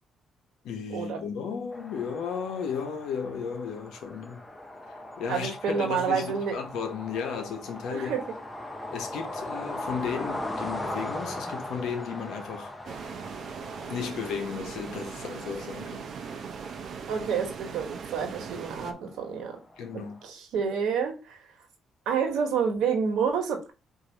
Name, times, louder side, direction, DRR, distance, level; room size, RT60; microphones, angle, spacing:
voice 1, 0.6-4.4 4.9-8.1 8.9-12.7 13.9-16.4 19.8-20.2, left 6 dB, 85° left, 0.9 m, -34 dB
sound 1, 1.7-20.3, left 1 dB, 15° left, 0.7 m, -40 dB
voice 2, 5.3-6.6 7.9-8.2 17.1-19.6 20.2-21.4 22.0-23.7, right 6 dB, 85° right, 1.2 m, -28 dB
sound 2, 12.8-18.9, right 6 dB, 60° right, 0.6 m, -39 dB
4.7 x 2.7 x 4.0 m
cardioid pair, 90°, 0 cm